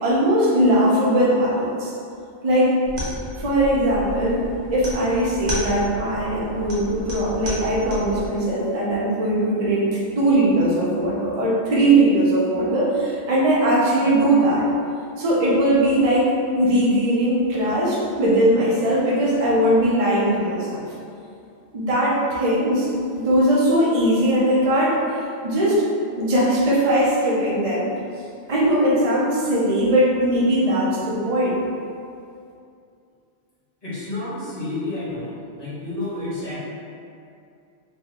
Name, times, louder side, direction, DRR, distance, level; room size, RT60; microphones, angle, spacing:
voice 1, 0.0-1.9 2.4-2.7 3.0-4.4 4.7-9.9 10.2-14.6 15.2-20.9 21.7-25.8 26.1-27.9 28.5-31.6, right 1 dB, 45° right, -6 dB, 0.5 m, -20 dB
sound 1, 2.8-8.3, left 1 dB, 60° right, 1.2 m, -32 dB
voice 2, 33.8-36.6, left 2 dB, 45° left, -11 dB, 1.4 m, -30 dB
3.1 x 2.1 x 3.6 m, 2.5 s
omnidirectional pair, 1.4 m